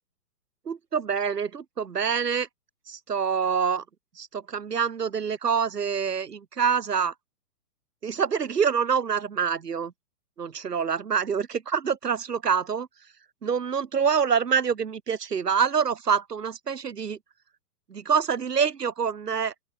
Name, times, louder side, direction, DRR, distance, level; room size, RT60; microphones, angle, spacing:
voice 1, 0.6-2.5 2.9-3.8 4.2-7.1 8.0-9.9 10.4-12.9 13.4-17.2 17.9-19.5, right 6 dB, 85° right, 3.4 m, -26 dB
open air
hypercardioid pair, 140°, 47 cm